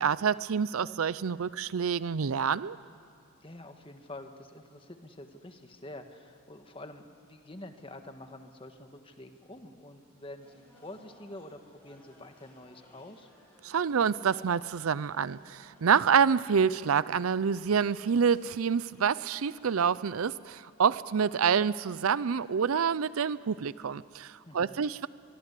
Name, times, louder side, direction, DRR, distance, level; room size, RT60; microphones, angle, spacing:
voice 1, 0.0-2.8 13.6-25.1, right 6 dB, 90° right, 18 dB, 0.5 m, -27 dB
voice 2, 3.4-13.3 24.4-24.8, left 1 dB, 25° left, 6 dB, 1.5 m, -47 dB
sound 1, 10.4-20.3, equal, 10° left, 7.6 m, -61 dB
24.0 x 23.5 x 8.3 m, 2.5 s
head